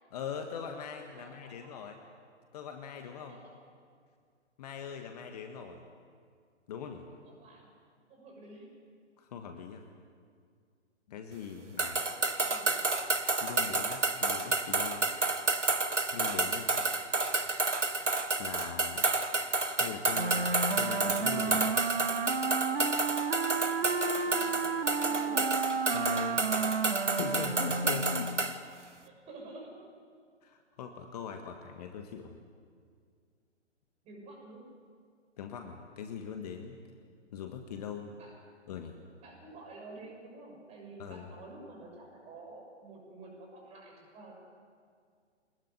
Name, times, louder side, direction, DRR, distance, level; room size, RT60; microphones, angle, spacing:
voice 1, 0.1-2.0 2.5-3.4 4.6-5.9 6.7-7.0 9.2-9.8 11.1-12.0 13.4-15.0 16.1-16.7 18.4-19.1 19.7-21.8 25.9-26.4 27.1-28.3 30.4-32.4 35.4-36.8 37.3-38.1 38.7-39.0 41.0-41.2, left 7 dB, 35° left, 5 dB, 1.6 m, -41 dB
voice 2, 1.1-1.9 3.0-3.5 7.1-7.7 8.1-8.7 11.5-12.9 23.5-25.6 29.0-29.8 34.0-34.7 38.2-38.4 39.2-44.4, right 2 dB, 20° right, 0 dB, 6.6 m, -50 dB
sound 1, 11.8-28.6, right 3 dB, 80° right, 1.6 m, -30 dB
Wind instrument woodwind instrument, 20.1-28.4, right 4 dB, 55° right, 1.7 m, -32 dB
23.0 x 20.5 x 9.5 m, 2.1 s
figure-of-eight pair, 130°, 35 cm